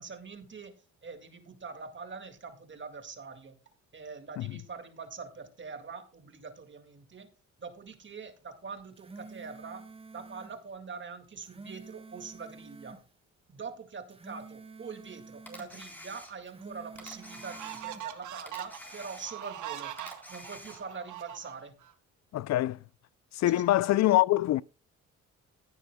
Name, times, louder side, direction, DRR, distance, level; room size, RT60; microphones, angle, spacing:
voice 1, 0.0-3.6 3.9-7.3 7.6-9.9 10.1-13.0 13.5-20.0 20.3-21.8 23.5-23.8, right 5 dB, 40° right, 2.0 m, -44 dB
sound 1, 8.8-10.6 11.2-13.0 13.9-15.7 16.3-18.1, right 4 dB, 20° right, 1.3 m, -49 dB
Camera, 15.5-16.6 17.0-18.1 18.5-19.6 20.0-21.0, left 1 dB, 5° left, 3.9 m, -48 dB
sound 2, 16.3-16.4 17.0-21.9, right 12 dB, 75° right, 1.5 m, -42 dB
voice 2, 22.3-22.8 23.3-24.6, left 15 dB, 65° left, 0.5 m, -24 dB
15.5 x 9.7 x 2.2 m
cardioid pair, 90°, 30 cm